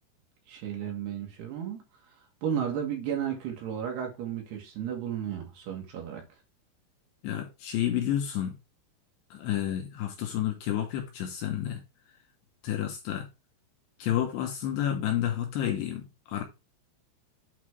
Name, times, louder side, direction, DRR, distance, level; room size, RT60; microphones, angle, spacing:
voice 1, 0.5-6.2, right 8 dB, 65° right, 3.1 m, -34 dB
voice 2, 7.2-8.5 9.3-11.8 12.6-13.3 14.0-16.4, left 11 dB, 75° left, 2.7 m, -30 dB
8.6 x 3.8 x 4.7 m
omnidirectional pair, 5.7 m